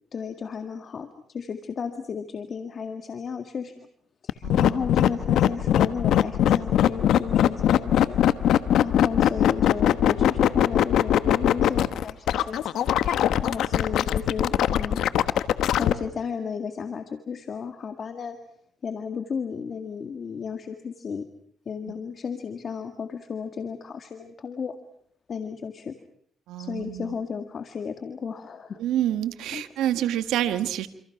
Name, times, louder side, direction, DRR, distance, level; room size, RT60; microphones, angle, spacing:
voice 1, 0.1-3.9 4.2-8.2 8.5-15.0 15.8-18.4 18.8-21.3 21.7-24.8 25.3-26.0 26.6-28.8 29.5-29.6, left 6 dB, 50° left, 7 dB, 1.9 m, -34 dB
sound 1, 4.3-15.9, left 11 dB, 80° left, 1.2 m, -21 dB
voice 2, 4.4-4.9 6.5-6.6 26.5-27.2 28.8-30.9, right 12 dB, 90° right, 10 dB, 1.7 m, -28 dB
27.5 x 27.0 x 5.9 m, 0.64 s
cardioid pair, 90°, 0 cm